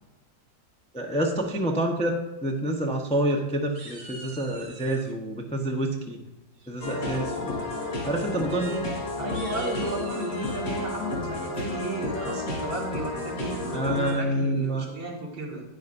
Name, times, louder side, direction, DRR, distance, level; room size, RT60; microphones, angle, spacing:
voice 1, 0.9-2.2 2.4-6.2 6.7-7.6 8.0-8.8 13.7-14.9, right 1 dB, 10° left, 1 dB, 0.4 m, -27 dB
sound 1, 2.8-3.4 3.7-5.1 6.6-7.0 7.4-7.6 7.9-8.0 8.4-8.6 9.2-10.7, right 2 dB, 60° right, 1.8 m, -46 dB
sound 2, 6.8-14.1, left 2 dB, 85° left, 3.8 m, -31 dB
voice 2, 9.2-15.6, right 1 dB, 90° right, -2 dB, 2.8 m, -34 dB
11.5 x 9.8 x 2.6 m, 1.0 s
omnidirectional pair, 2.0 m